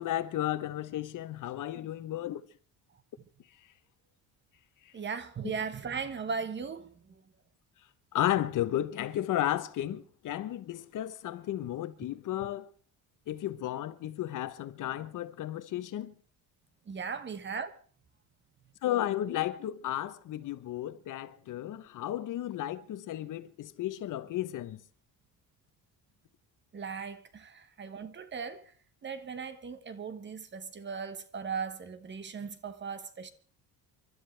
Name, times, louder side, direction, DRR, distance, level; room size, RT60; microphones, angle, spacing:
voice 1, 0.0-2.4 8.1-12.7 13.3-16.1 18.8-24.8, left 13 dB, 55° left, 0.9 m, -33 dB
voice 2, 4.9-7.1 16.9-17.7 26.7-28.7 29.0-33.3, right 5 dB, 30° right, 1.2 m, -38 dB
29.0 x 12.5 x 3.3 m
cardioid pair, 140°, 37 cm